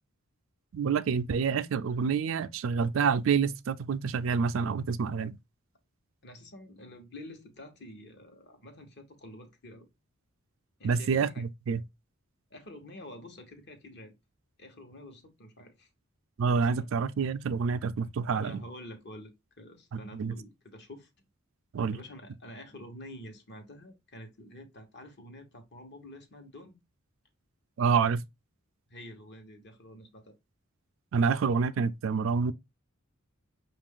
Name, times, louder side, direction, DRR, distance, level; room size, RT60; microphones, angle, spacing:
voice 1, 0.7-5.4 10.8-11.8 16.4-18.6 19.9-20.3 21.7-22.0 27.8-28.2 31.1-32.5, right 5 dB, 65° right, 0.4 m, -28 dB
voice 2, 6.2-9.9 10.8-11.4 12.5-14.1 14.6-15.9 16.8-16.9 18.3-21.1 21.9-26.8 28.9-30.4, left 1 dB, 55° left, 1.0 m, -48 dB
5.3 x 2.5 x 3.6 m
head